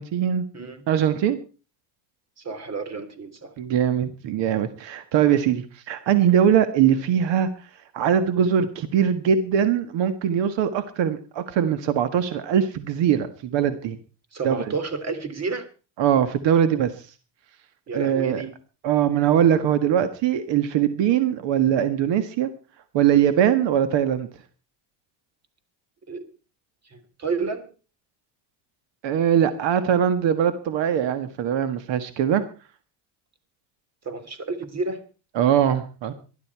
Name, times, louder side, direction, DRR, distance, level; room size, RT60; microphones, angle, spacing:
voice 1, 0.0-0.4 0.9-1.4 3.6-7.5 7.9-14.0 14.4-14.6 16.0-16.9 17.9-18.4 18.8-22.5 22.9-24.3 29.0-32.4 35.3-36.1, right 9 dB, 75° right, 11 dB, 1.6 m, -21 dB
voice 2, 2.4-3.5 14.3-15.7 17.9-18.5 26.1-26.2 26.9-27.7 34.0-35.0, right 4 dB, 35° right, 12 dB, 3.0 m, -30 dB
19.5 x 12.5 x 4.7 m, 0.36 s
cardioid pair, 110°, 44 cm